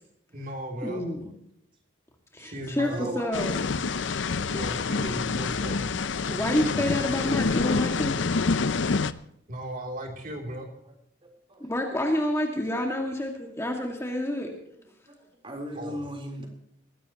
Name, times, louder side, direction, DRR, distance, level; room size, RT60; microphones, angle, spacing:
voice 1, 0.3-1.1 2.4-3.2 4.5-5.8 9.5-10.7 15.7-16.0, right 1 dB, 45° right, 1 dB, 3.2 m, -36 dB
voice 2, 0.8-1.3 2.3-3.6 6.3-8.2 11.6-14.5, left 1 dB, 15° left, 1 dB, 2.0 m, -28 dB
voice 3, 2.8-3.4 11.2-11.7 15.1-15.2 15.4-16.5, equal, 25° right, 2 dB, 3.9 m, -37 dB
sound 1, 3.3-9.1, left 4 dB, 75° left, 0.6 m, -27 dB
20.0 x 16.0 x 3.0 m, 0.73 s
head